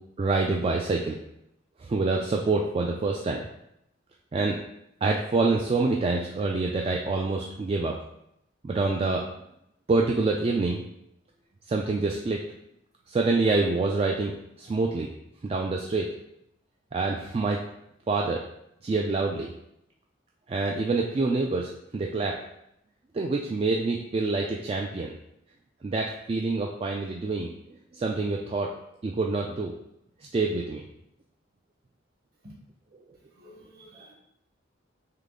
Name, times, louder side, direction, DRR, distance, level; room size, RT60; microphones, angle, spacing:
voice 1, 0.2-1.2 1.8-3.4 4.3-4.6 5.0-8.0 8.6-9.2 9.9-10.8 11.7-12.4 13.1-15.1 15.4-16.1 16.9-17.6 18.1-18.4 18.8-19.5 20.5-22.4 23.1-25.1 25.8-27.5 27.9-28.7 29.0-29.7 30.3-30.8, right 3 dB, 30° right, 0 dB, 0.3 m, -26 dB
voice 2, 33.4-34.1, equal, 50° right, -3 dB, 1.4 m, -50 dB
3.8 x 3.2 x 3.6 m, 0.80 s
head